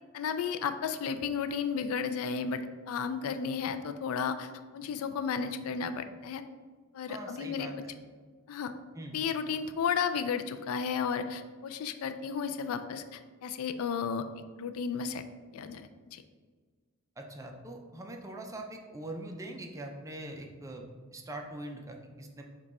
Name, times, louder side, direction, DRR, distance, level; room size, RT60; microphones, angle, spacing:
voice 1, 0.1-6.4 6.9-7.7 8.5-8.7 9.1-14.2 14.6-15.2 15.5-16.2, left 6 dB, 75° left, 9 dB, 0.3 m, -33 dB
voice 2, 7.1-7.9 8.9-9.2 17.2-22.4, right 1 dB, 15° right, 2 dB, 0.4 m, -42 dB
4.9 x 2.3 x 4.1 m, 1.5 s
head